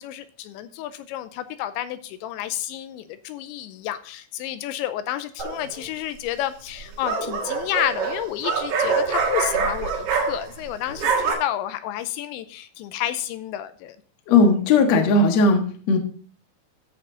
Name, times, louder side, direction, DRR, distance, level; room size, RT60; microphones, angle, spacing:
voice 1, 0.0-14.0, left 12 dB, 85° left, 12 dB, 2.8 m, -30 dB
sound 1, 5.4-5.8 6.7-10.6 10.9-11.3, right 5 dB, 60° right, 2.1 m, -25 dB
voice 2, 14.3-16.0, left 3 dB, 65° left, 4 dB, 1.7 m, -17 dB
14.0 x 5.7 x 3.8 m, 0.42 s
omnidirectional pair, 5.3 m